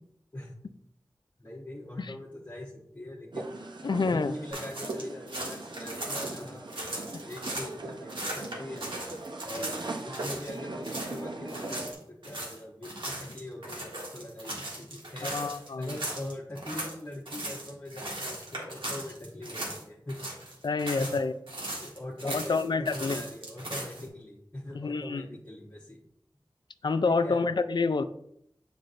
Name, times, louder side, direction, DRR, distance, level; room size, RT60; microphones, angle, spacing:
voice 1, 1.4-3.6 3.9-8.9 9.4-15.4 15.8-20.2 20.8-21.1 21.8-26.0 27.1-27.4, left 1 dB, 30° left, -5 dB, 1.0 m, -42 dB
sound 1, 3.3-11.9, right 2 dB, 65° right, 0.7 m, -40 dB
voice 2, 3.8-4.3 15.2-16.0 20.6-21.3 22.2-23.2 24.7-25.2 26.8-28.0, left 4 dB, 65° left, 11 dB, 0.4 m, -28 dB
sound 2, 4.5-7.7 8.1-10.6 10.8-11.2 11.5-19.8 20.1-21.2 21.5-24.1, right 1 dB, 90° right, 1.7 m, -38 dB
7.7 x 5.1 x 2.6 m, 0.73 s
wide cardioid pair, 65°, 8 cm